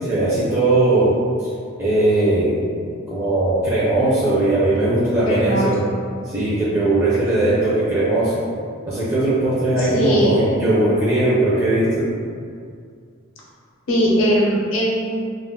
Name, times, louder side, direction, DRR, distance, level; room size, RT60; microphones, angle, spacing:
voice 1, 0.0-1.1 1.8-2.5 3.1-5.8 6.3-8.4 8.9-12.0, right 2 dB, 15° right, -10 dB, 0.4 m, -19 dB
voice 2, 5.3-5.7 9.9-10.3 13.9-15.0, equal, 70° left, -5 dB, 0.6 m, -19 dB
2.2 x 2.0 x 3.6 m, 2.2 s
head